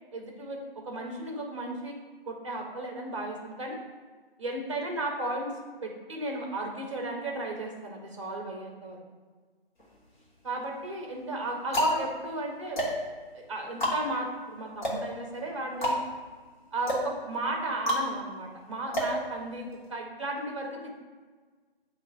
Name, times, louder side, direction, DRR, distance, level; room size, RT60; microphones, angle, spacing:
voice 1, 0.1-0.6 0.8-1.9 2.2-3.8 4.4-5.5 5.8-9.0 10.4-12.8 13.3-16.0 16.7-20.9, right 2 dB, 30° right, 1 dB, 0.6 m, -34 dB
sound 1, 9.8-10.5 11.2-19.9, equal, 50° left, 1.1 m, -32 dB
7.0 x 2.5 x 2.5 m, 1.4 s
figure-of-eight pair, 150°, 30 cm